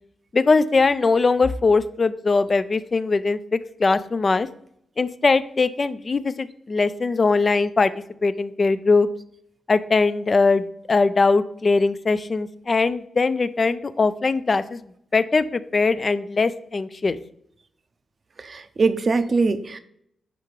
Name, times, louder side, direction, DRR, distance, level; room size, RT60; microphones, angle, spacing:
voice 1, 0.3-4.5 5.0-7.9 8.2-9.1 9.7-14.8 15.1-17.2, left 4 dB, 45° left, 13 dB, 0.4 m, -21 dB
voice 2, 18.4-19.8, right 4 dB, 50° right, 11 dB, 0.6 m, -22 dB
5.1 x 4.7 x 4.6 m, 0.71 s
supercardioid pair, 55°, 0 cm